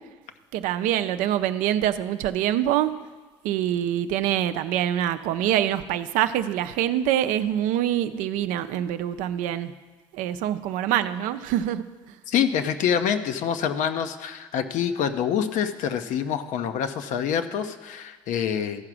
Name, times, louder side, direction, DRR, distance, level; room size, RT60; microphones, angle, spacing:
voice 1, 0.5-2.9 3.4-9.7 10.1-11.8, right 11 dB, 75° right, 10 dB, 0.5 m, -25 dB
voice 2, 12.3-18.9, left 8 dB, 65° left, 9 dB, 0.7 m, -26 dB
14.0 x 4.8 x 6.2 m, 1.3 s
supercardioid pair, 70°, 14 cm